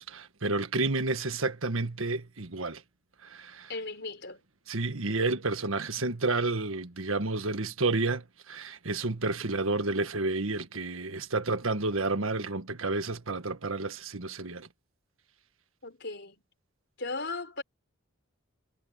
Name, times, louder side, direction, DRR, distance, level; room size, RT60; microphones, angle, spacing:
voice 1, 0.0-2.8 3.2-3.7 4.7-14.7, right 3 dB, 75° right, 1.6 m, -30 dB
voice 2, 3.7-4.4 15.8-16.4 17.0-17.6, left 3 dB, 55° left, 5.3 m, -37 dB
head